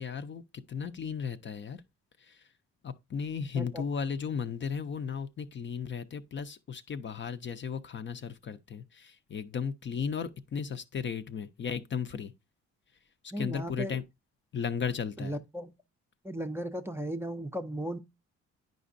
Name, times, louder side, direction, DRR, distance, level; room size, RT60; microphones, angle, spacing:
voice 1, 0.0-1.8 2.2-2.5 2.8-12.3 13.4-14.0 14.5-15.3, left 6 dB, 40° left, 0.5 m, -35 dB
voice 2, 3.6-3.9 13.3-14.0 15.2-15.7 16.2-18.0, right 1 dB, 10° right, 0.5 m, -36 dB
9.2 x 5.1 x 2.5 m
cardioid pair, 90°, 30 cm